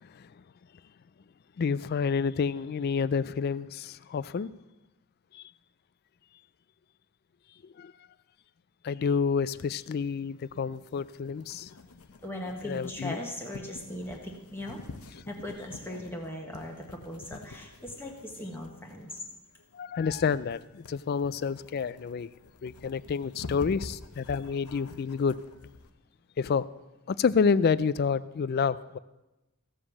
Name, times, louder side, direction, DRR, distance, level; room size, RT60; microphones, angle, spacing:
voice 1, 1.6-4.5 5.3-5.4 7.8-7.9 8.8-11.7 12.6-13.2 19.7-22.3 22.6-25.4 26.4-26.7 27.1-29.0, left 5 dB, 45° left, 0.3 m, -29 dB
sound 1, 9.6-25.9, left 3 dB, 85° left, 0.8 m, -48 dB
voice 2, 12.2-14.8 15.3-19.2, left 1 dB, 10° left, 1.1 m, -39 dB
15.0 x 5.1 x 7.2 m
head